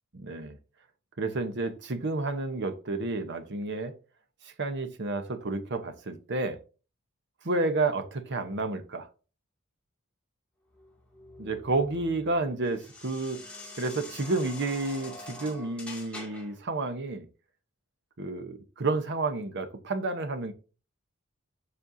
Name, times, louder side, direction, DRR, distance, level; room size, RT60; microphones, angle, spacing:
voice 1, 0.1-0.6 1.2-3.9 4.4-6.6 7.4-9.1 11.4-13.4 13.8-17.3 18.2-20.5, right 3 dB, 55° right, 1.0 m, -30 dB
sound 1, 10.7-16.6, left 2 dB, 5° left, 2.4 m, -45 dB
12.0 x 4.3 x 2.7 m
head